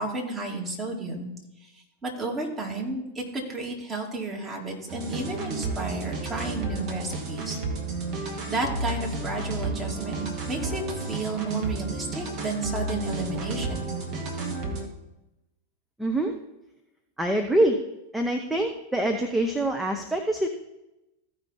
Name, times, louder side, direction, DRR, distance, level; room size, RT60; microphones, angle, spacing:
voice 1, 0.0-1.3 1.6-7.6 8.5-13.9, right 2 dB, 20° right, -1 dB, 2.4 m, -32 dB
sound 1, 4.9-14.9, right 3 dB, 40° right, 1.9 m, -32 dB
voice 2, 16.0-16.4 17.2-17.8 18.1-20.5, right 1 dB, 5° right, 4 dB, 0.8 m, -25 dB
14.5 x 5.2 x 4.2 m, 0.93 s
figure-of-eight pair, 90°, 0 cm